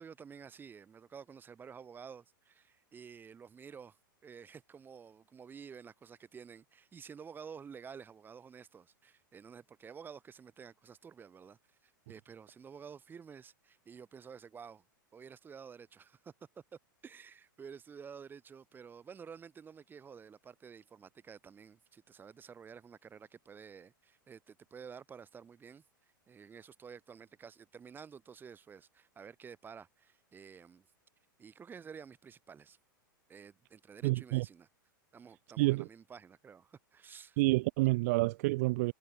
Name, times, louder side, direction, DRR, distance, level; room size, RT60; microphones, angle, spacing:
voice 1, 0.0-14.8 15.1-16.3 16.7-25.8 26.3-30.9 31.4-32.8 33.3-34.7 35.1-37.4, right 6 dB, 20° right, 3.9 m, -51 dB
voice 2, 34.0-34.4 35.6-35.8 37.4-38.9, right 22 dB, 45° right, 1.0 m, -28 dB
figure-of-eight pair, 95°, 11 cm